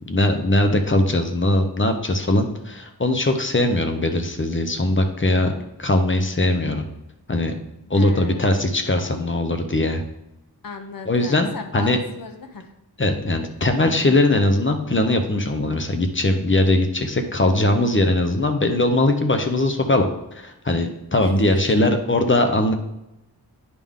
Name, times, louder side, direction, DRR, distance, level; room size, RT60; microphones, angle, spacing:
voice 1, 0.1-5.5 5.8-6.8 7.3-7.5 7.9-10.0 11.1-12.0 13.0-20.1 20.3-22.7, left 1 dB, 30° left, 6 dB, 0.8 m, -20 dB
voice 2, 7.9-8.6 10.6-12.7 21.2-21.3, left 4 dB, 55° left, 6 dB, 0.9 m, -36 dB
10.0 x 3.7 x 3.6 m, 0.89 s
wide cardioid pair, 90°, 41 cm